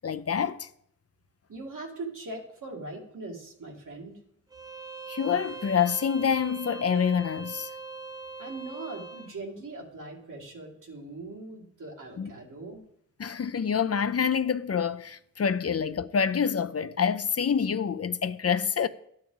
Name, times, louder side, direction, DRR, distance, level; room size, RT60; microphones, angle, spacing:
voice 1, 0.0-0.7 5.1-7.7 12.2-12.3 13.2-18.9, left 7 dB, 50° left, 0.6 m, -27 dB
voice 2, 1.5-4.2 8.4-12.8, right 2 dB, 80° right, 2.2 m, -40 dB
Bowed string instrument, 4.5-9.3, right 4 dB, 10° right, 0.5 m, -41 dB
11.5 x 8.7 x 3.9 m
cardioid pair, 50°, 31 cm